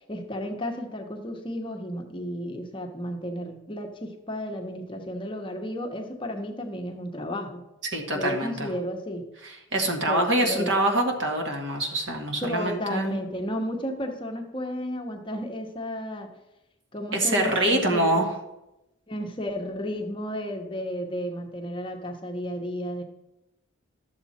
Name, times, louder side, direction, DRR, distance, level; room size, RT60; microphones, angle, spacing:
voice 1, 0.1-7.6 8.1-9.3 10.1-10.8 12.4-16.3 16.9-18.2 19.1-23.0, equal, 25° left, 2 dB, 1.0 m, -33 dB
voice 2, 7.9-8.7 9.4-13.2 17.1-18.3, right 1 dB, 55° right, 2 dB, 1.7 m, -25 dB
12.5 x 7.2 x 4.2 m, 0.92 s
head